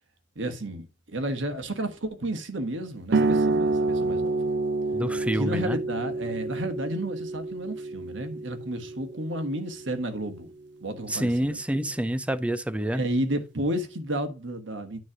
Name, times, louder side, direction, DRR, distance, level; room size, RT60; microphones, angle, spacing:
voice 1, 0.3-4.4 5.3-10.5 10.8-11.6 12.9-15.0, right 1 dB, 90° right, 1.4 m, -32 dB
sound 1, 3.1-10.3, right 3 dB, 65° right, 0.5 m, -28 dB
voice 2, 4.9-5.8 11.1-13.0, right 1 dB, 5° right, 0.5 m, -27 dB
9.5 x 3.3 x 5.9 m
head